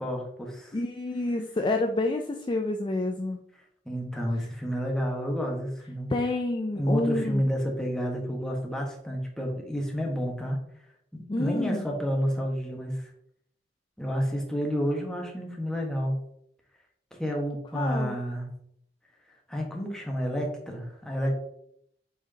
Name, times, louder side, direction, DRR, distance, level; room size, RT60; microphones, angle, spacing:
voice 1, 0.0-0.8 3.8-6.1 6.7-10.6 11.1-13.1 14.0-16.1 17.2-18.5 19.5-21.3, equal, 5° left, -1 dB, 1.4 m, -30 dB
voice 2, 0.7-3.4 6.1-7.4 11.3-11.9 17.7-18.2, left 2 dB, 25° left, 4 dB, 0.4 m, -28 dB
8.1 x 4.8 x 2.9 m, 0.70 s
head